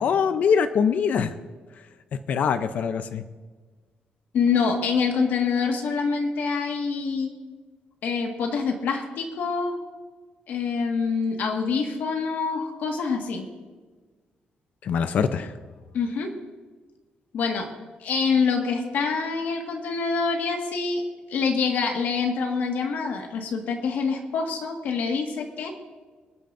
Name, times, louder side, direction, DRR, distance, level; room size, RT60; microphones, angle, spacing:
voice 1, 0.0-1.3 2.3-3.2 14.8-15.5, left 6 dB, 55° left, 10 dB, 0.6 m, -23 dB
voice 2, 4.3-7.3 8.0-9.8 10.5-13.5 15.9-16.3 17.3-17.7 18.0-21.0 21.3-25.7, left 5 dB, 70° left, 3 dB, 1.7 m, -26 dB
26.0 x 8.8 x 2.6 m, 1.4 s
wide cardioid pair, 180°, 3 cm